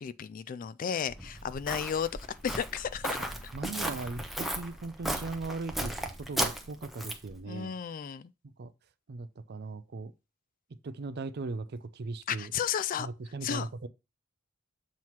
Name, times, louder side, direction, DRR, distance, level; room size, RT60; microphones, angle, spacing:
voice 1, 0.0-3.2 7.5-8.3 12.3-13.1 13.4-13.7, left 8 dB, 40° left, 0.3 m, -33 dB
Walk footsteps, 1.1-7.4, right 1 dB, ahead, 0.9 m, -35 dB
voice 2, 3.5-7.7 8.4-8.7 9.1-10.1 10.8-12.5 13.0-13.9, right 3 dB, 55° right, 0.5 m, -38 dB
7.5 x 3.1 x 5.7 m
head